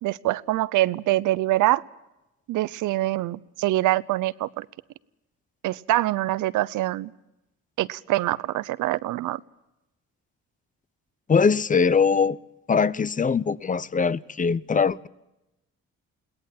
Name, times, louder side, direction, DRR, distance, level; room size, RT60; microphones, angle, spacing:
voice 1, 0.0-1.8 2.5-4.7 5.6-7.1 7.8-9.4, right 16 dB, 85° right, 0.7 m, -24 dB
voice 2, 11.3-12.4 12.7-15.1, left 5 dB, 25° left, 0.7 m, -21 dB
22.0 x 18.0 x 7.3 m
cardioid pair, 90°, 30 cm